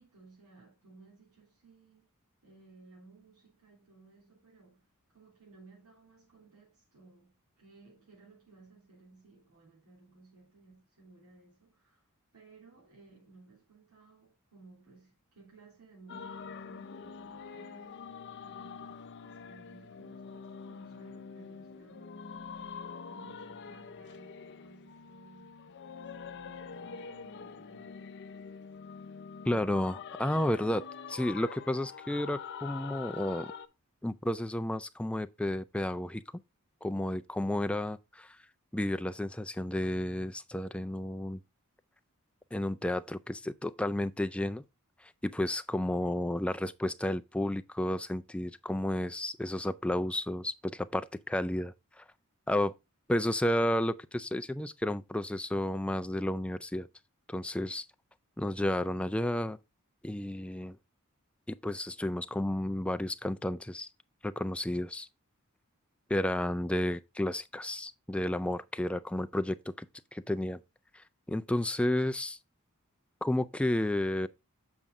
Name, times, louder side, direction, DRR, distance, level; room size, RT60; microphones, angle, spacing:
voice 1, 0.0-2.1 2.4-12.1 12.3-25.7 25.9-28.1, right 3 dB, 85° right, 3.0 m, -58 dB
sound 1, 16.1-33.7, left 6 dB, 55° left, 0.6 m, -45 dB
voice 2, 29.5-33.5 34.0-36.2 36.8-38.4 38.7-41.4 42.5-44.6 45.2-52.0 52.5-52.7 53.1-56.9 57.3-57.8 58.4-59.6 60.0-60.8 61.5-63.9 64.2-65.1 66.1-69.9 70.1-70.6 70.9-72.4 73.2-74.3, left 1 dB, 5° left, 0.3 m, -32 dB
7.4 x 5.2 x 3.6 m
head